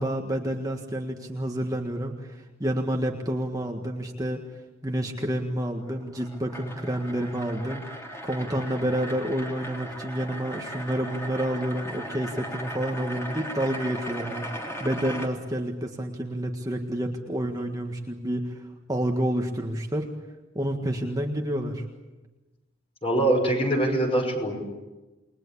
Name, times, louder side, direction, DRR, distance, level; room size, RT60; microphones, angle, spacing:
voice 1, 0.0-4.4 4.8-7.9 8.2-20.1 20.6-21.8, right 1 dB, 20° right, 2 dB, 1.7 m, -29 dB
sound 1, 5.8-15.3, equal, 15° left, 3.3 m, -38 dB
voice 2, 23.0-24.6, right 1 dB, 30° left, 2 dB, 5.9 m, -23 dB
29.0 x 21.5 x 8.5 m, 1.1 s
head